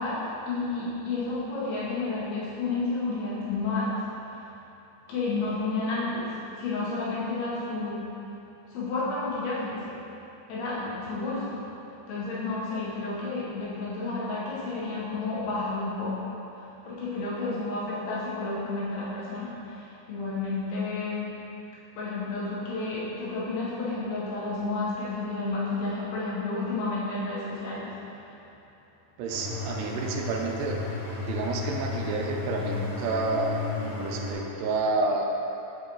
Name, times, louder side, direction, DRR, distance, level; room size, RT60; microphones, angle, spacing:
voice 1, 0.0-4.4 5.1-8.2 8.7-10.1 10.5-11.7 12.1-21.3 21.9-28.2, left 3 dB, 75° left, -8 dB, 3.3 m, -31 dB
voice 2, 29.2-30.8 31.3-33.6 33.8-35.3, right 3 dB, 85° right, 1 dB, 2.7 m, -29 dB
sound 1, 29.3-34.3, left 4 dB, 60° left, 2.9 m, -33 dB
8.2 x 5.3 x 3.1 m, 2.9 s
omnidirectional pair, 4.7 m